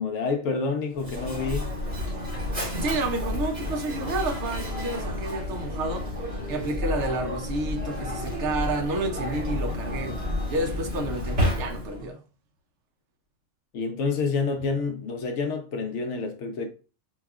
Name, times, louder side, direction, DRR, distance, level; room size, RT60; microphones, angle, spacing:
voice 1, 0.0-1.7 13.7-16.7, left 4 dB, 65° left, 0.8 m, -28 dB
Mechanisms, 0.9-12.1, left 1 dB, 45° right, 1.6 m, -31 dB
voice 2, 2.8-6.1 6.5-10.2 10.5-12.2, right 2 dB, 65° right, 0.9 m, -30 dB
4.7 x 2.3 x 2.3 m
omnidirectional pair, 1.4 m